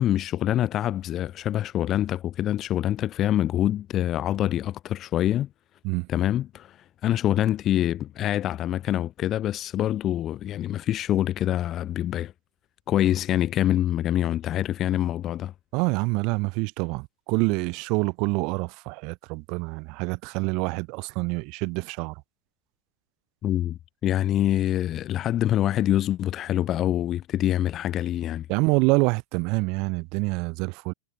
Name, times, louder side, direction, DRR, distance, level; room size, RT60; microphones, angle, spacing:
voice 1, 0.0-5.5 6.1-6.8 7.0-12.3 12.9-15.5 23.4-28.5, left 12 dB, 30° left, 2.2 m, -25 dB
voice 2, 15.7-22.1 28.5-30.9, right 29 dB, 45° right, 5.4 m, -26 dB
figure-of-eight pair, 90°, 0 cm